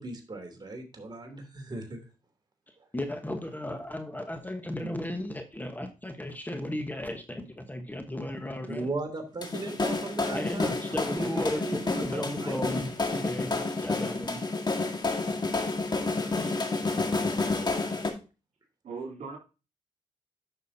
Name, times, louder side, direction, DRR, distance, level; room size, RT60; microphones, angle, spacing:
voice 1, 0.0-2.0 8.7-10.7 11.1-12.6 16.4-16.6, right 3 dB, 35° right, 4 dB, 3.0 m, -37 dB
voice 2, 2.9-8.9 10.3-14.4, left 1 dB, 15° left, 6 dB, 1.2 m, -35 dB
sound 1, 9.4-18.1, left 3 dB, 35° left, 1.8 m, -30 dB
voice 3, 18.8-19.4, right 4 dB, 65° right, 1 dB, 3.6 m, -39 dB
9.6 x 6.1 x 2.8 m, 0.30 s
cardioid pair, 65°, 13 cm